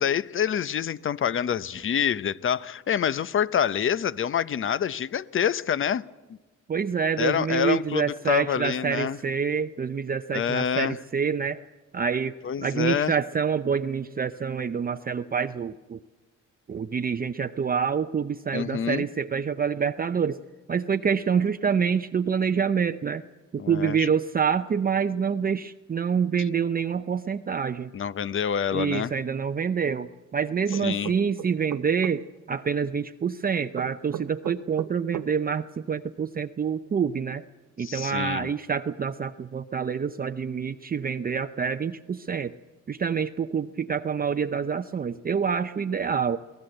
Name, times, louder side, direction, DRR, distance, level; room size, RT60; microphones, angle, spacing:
voice 1, 0.0-6.0 7.2-9.2 10.3-11.0 12.4-13.1 18.5-19.1 23.6-24.1 27.9-29.1 30.8-31.1 37.8-38.5, left 8 dB, 45° left, 0.7 m, -27 dB
voice 2, 6.7-11.6 11.9-16.0 16.7-20.4 20.7-23.2 23.5-27.9 28.7-37.4 37.8-42.5 42.9-46.4, right 6 dB, 30° right, 0.6 m, -27 dB
sound 1, 30.7-32.2 33.7-35.3, right 13 dB, 80° right, 0.9 m, -35 dB
22.5 x 18.0 x 7.8 m
cardioid pair, 90°, 30 cm